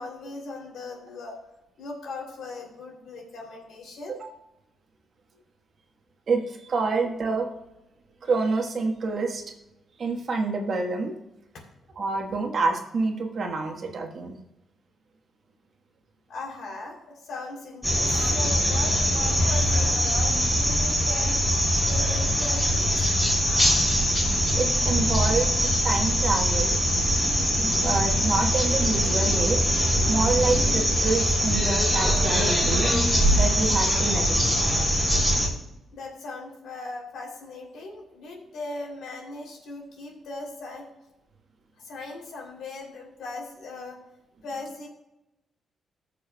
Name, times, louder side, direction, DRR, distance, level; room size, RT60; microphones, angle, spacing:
voice 1, 0.0-1.4 1.8-4.1 16.3-17.0 17.2-21.3 21.7-23.2 35.9-40.9 41.8-44.0 44.4-44.9, left 3 dB, 85° left, 0 dB, 2.8 m, -38 dB
voice 2, 6.3-7.5 8.2-9.4 10.0-11.1 12.0-14.4 24.6-25.5 25.8-26.8 27.6-29.6 30.1-32.9 33.4-34.5, right 3 dB, 55° right, 2 dB, 1.2 m, -27 dB
sound 1, 17.8-35.5, equal, 10° left, 3.9 m, -22 dB
19.0 x 6.6 x 2.2 m, 0.91 s
cardioid pair, 120°, 0 cm